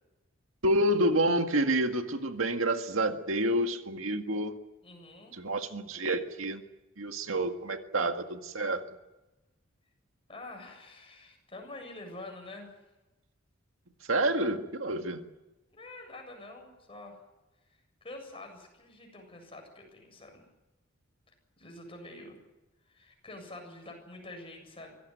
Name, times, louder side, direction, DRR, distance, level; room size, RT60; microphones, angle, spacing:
voice 1, 0.6-4.5 5.3-6.6 7.0-8.8 14.1-15.2, right 1 dB, 80° right, 6 dB, 1.9 m, -28 dB
voice 2, 4.8-5.4 10.3-12.7 15.7-17.2 18.0-20.4 21.6-22.4 22.9-24.9, left 2 dB, 30° left, 3 dB, 7.5 m, -46 dB
24.5 x 17.0 x 9.4 m, 1.1 s
head